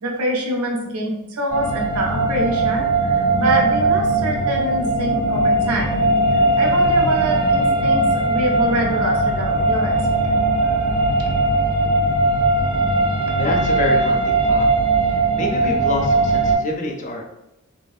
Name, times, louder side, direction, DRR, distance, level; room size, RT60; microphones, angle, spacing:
voice 1, 0.0-6.0 6.6-10.3 10.6-10.7, equal, 85° right, 1 dB, 0.6 m, -25 dB
sound 1, 1.5-16.6, right 2 dB, 45° right, 0.6 m, -19 dB
voice 2, 13.4-14.7 15.0-17.2, left 1 dB, 35° left, 1 dB, 0.4 m, -27 dB
2.8 x 2.6 x 2.3 m, 0.88 s
head